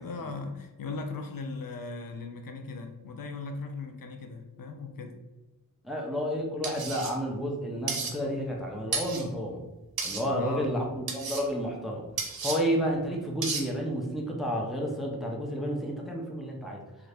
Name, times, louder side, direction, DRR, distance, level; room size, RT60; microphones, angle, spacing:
voice 1, 0.0-5.1 10.2-11.0, left 3 dB, 70° left, 5 dB, 0.5 m, -38 dB
voice 2, 5.8-9.6 10.0-12.0 12.4-16.8, equal, ahead, -1 dB, 0.5 m, -31 dB
sound 1, 6.6-7.1 7.9-8.1 8.9-9.2 10.0-10.2 11.1-11.4 12.2-12.6 13.4-13.6, right 4 dB, 75° right, 0.6 m, -32 dB
2.7 x 2.4 x 3.2 m, 1.1 s
wide cardioid pair, 130°, 36 cm